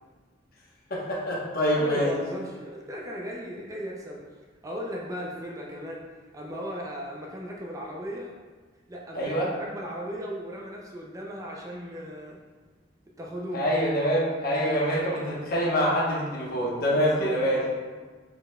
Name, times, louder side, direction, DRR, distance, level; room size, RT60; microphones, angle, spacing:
voice 1, 0.9-2.1 9.1-9.5 13.5-17.6, equal, 50° left, -4 dB, 1.0 m, -25 dB
voice 2, 1.8-4.2 4.6-8.3 8.9-12.4 13.2-13.7 16.9-17.8, equal, 15° right, -2 dB, 0.5 m, -37 dB
5.2 x 4.0 x 2.3 m, 1.4 s
head